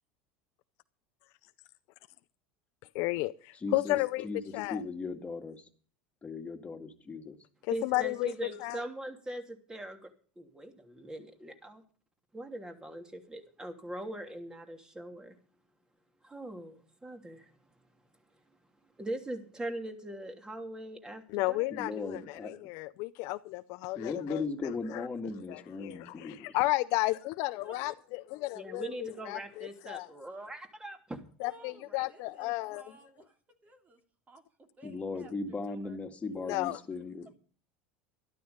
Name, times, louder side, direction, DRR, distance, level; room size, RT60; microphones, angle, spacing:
voice 1, 2.9-4.3 4.5-4.8 7.6-8.3 8.6-8.8 21.3-25.1 25.5-30.1 31.4-32.8 36.5-36.8, left 20 dB, 65° left, 0.6 m, -33 dB
voice 2, 3.6-4.0 4.2-5.7 6.2-7.4 21.7-22.6 24.0-26.5 34.8-37.4, left 3 dB, 25° left, 2.3 m, -38 dB
voice 3, 7.7-11.8 12.3-15.4 16.2-17.7 18.3-18.4 19.0-21.7 28.5-31.2 31.9-32.0, right 1 dB, 15° right, 3.0 m, -41 dB
voice 4, 31.4-34.0 34.3-36.0 36.5-36.7, right 2 dB, 30° right, 3.0 m, -56 dB
13.0 x 12.5 x 5.3 m
hypercardioid pair, 85°, 5 cm